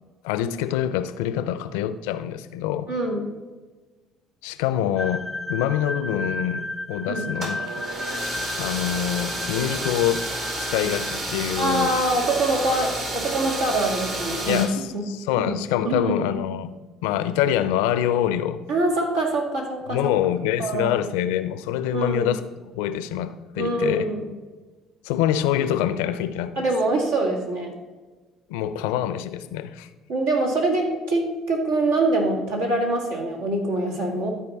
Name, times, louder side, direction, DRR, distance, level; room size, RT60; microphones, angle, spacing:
voice 1, 0.2-2.9 4.4-7.6 8.6-10.2 10.6-11.9 14.5-16.7 17.0-18.6 19.9-24.1 25.0-26.7 28.5-29.9, left 11 dB, 75° left, 13 dB, 0.4 m, -25 dB
voice 2, 2.9-3.3 7.1-7.3 11.6-14.6 14.9-15.0 15.4-15.5 15.8-16.3 18.7-20.1 20.6-21.0 21.9-22.3 23.6-24.3 26.6-27.7 30.1-34.3, right 2 dB, 80° right, -2 dB, 1.9 m, -24 dB
sound 1, 5.0-11.2, left 1 dB, 20° left, 0.4 m, -34 dB
sound 2, 7.3-14.7, right 1 dB, 55° right, 2.5 m, -30 dB
13.0 x 4.4 x 4.1 m, 1.3 s
hypercardioid pair, 55°, 0 cm